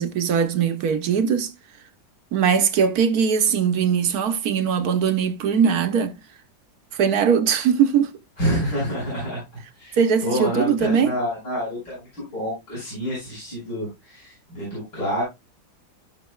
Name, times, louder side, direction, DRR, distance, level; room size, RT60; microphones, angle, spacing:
voice 1, 0.0-1.5 2.3-6.1 6.9-8.1 10.0-11.1, right 7 dB, 60° right, 1.3 m, -20 dB
voice 2, 8.4-9.4 9.8-15.2, equal, 60° left, 6.8 m, -28 dB
15.5 x 5.7 x 2.3 m
omnidirectional pair, 2.1 m